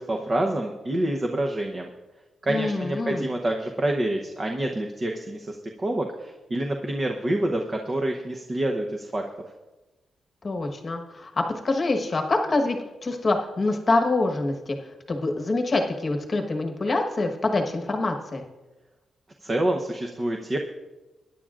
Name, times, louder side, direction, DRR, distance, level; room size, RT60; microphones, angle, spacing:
voice 1, 0.0-1.9 2.4-9.2 19.4-20.6, right 1 dB, 25° right, 2 dB, 0.8 m, -27 dB
voice 2, 2.5-3.2 10.4-12.8 13.0-14.8 15.1-18.4, left 2 dB, 25° left, 4 dB, 1.2 m, -25 dB
21.5 x 10.0 x 2.5 m, 1.1 s
wide cardioid pair, 170°, 0 cm